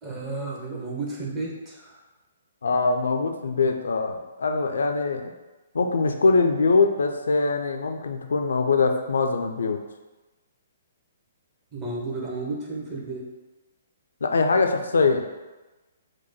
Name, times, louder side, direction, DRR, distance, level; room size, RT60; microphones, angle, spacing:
voice 1, 0.0-2.0 11.7-13.3, right 3 dB, 20° right, -3 dB, 0.9 m, -32 dB
voice 2, 2.6-5.3 5.7-9.8 14.2-15.2, left 4 dB, 65° left, 5 dB, 0.4 m, -22 dB
4.6 x 2.2 x 4.2 m, 1.1 s
figure-of-eight pair, 120°, 0 cm